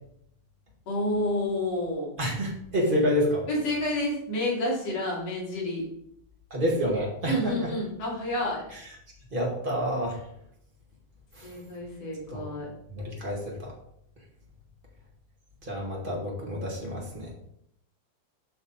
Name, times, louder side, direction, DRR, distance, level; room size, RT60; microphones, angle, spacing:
voice 1, 0.9-2.2 3.5-5.9 7.3-8.6 11.4-12.7, left 1 dB, 50° left, -5 dB, 3.9 m, -29 dB
voice 2, 2.2-3.5 6.5-7.7 8.7-8.9 9.3-10.3 11.3-11.6 12.3-12.5 12.9-13.7 15.6-17.3, equal, 25° right, -2 dB, 1.0 m, -28 dB
8.5 x 6.0 x 4.2 m, 0.73 s
omnidirectional pair, 4.1 m